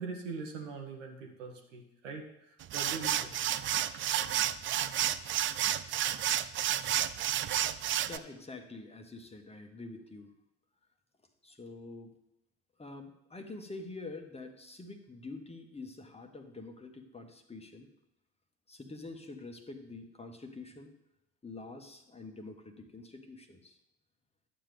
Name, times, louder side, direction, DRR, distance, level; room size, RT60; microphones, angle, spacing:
voice 1, 0.0-3.4, right 4 dB, 80° right, 1 dB, 1.4 m, -42 dB
sound 1, 2.6-8.2, right 11 dB, 35° right, 0.4 m, -31 dB
voice 2, 8.1-10.3 11.4-12.1 12.8-17.9 18.7-20.9 21.4-23.8, left 3 dB, 15° left, 5 dB, 1.2 m, -46 dB
11.5 x 7.5 x 3.5 m, 0.88 s
figure-of-eight pair, 60°, 37 cm